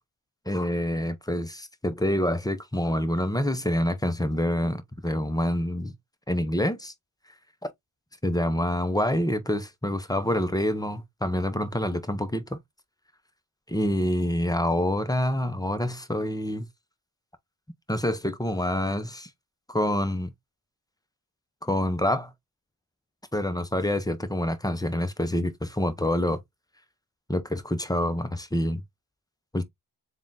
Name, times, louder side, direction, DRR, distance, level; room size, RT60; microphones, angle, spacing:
voice 1, 0.5-5.9 6.3-6.9 7.6-7.7 8.2-12.6 13.7-16.7 17.9-19.3 19.7-20.3 21.6-22.3 23.3-26.4 27.3-28.8 29.5-29.6, left 1 dB, 10° left, 0.6 m, -27 dB
3.6 x 2.4 x 3.8 m
cardioid pair, 60°, 49 cm